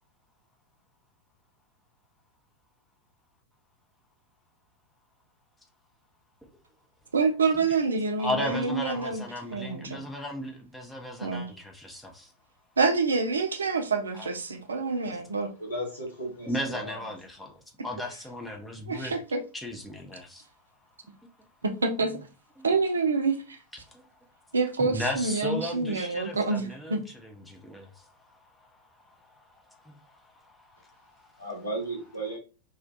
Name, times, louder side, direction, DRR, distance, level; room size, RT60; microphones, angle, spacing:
voice 1, 7.1-9.2 9.5-10.0 11.2-11.5 12.8-15.5 18.9-19.4 21.6-22.3 22.6-23.6 24.5-27.0, right 4 dB, 75° right, 0.4 m, -27 dB
voice 2, 8.2-12.3 14.1-14.3 15.0-15.2 16.5-19.1 19.6-20.5 21.2-21.5 22.6-22.7 23.8-31.5, left 1 dB, 5° left, 0.5 m, -37 dB
voice 3, 15.6-17.0 31.4-32.4, right 1 dB, 80° left, 1.0 m, -35 dB
2.4 x 2.2 x 2.5 m
figure-of-eight pair, 90°, 0 cm